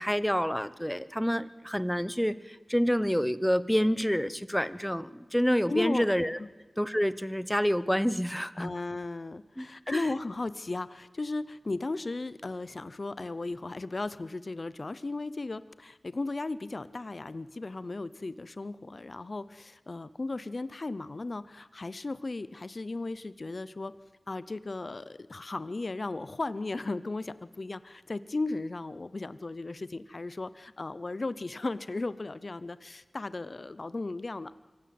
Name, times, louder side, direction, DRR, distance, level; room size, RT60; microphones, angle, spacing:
voice 1, 0.0-6.4 6.8-8.7 9.6-10.1, equal, 5° left, 15 dB, 0.9 m, -28 dB
voice 2, 5.7-6.1 6.4-6.5 8.6-24.0 24.3-34.5, left 2 dB, 60° left, 16 dB, 0.7 m, -36 dB
24.5 x 16.5 x 7.8 m, 1.3 s
wide cardioid pair, 45°, 0 cm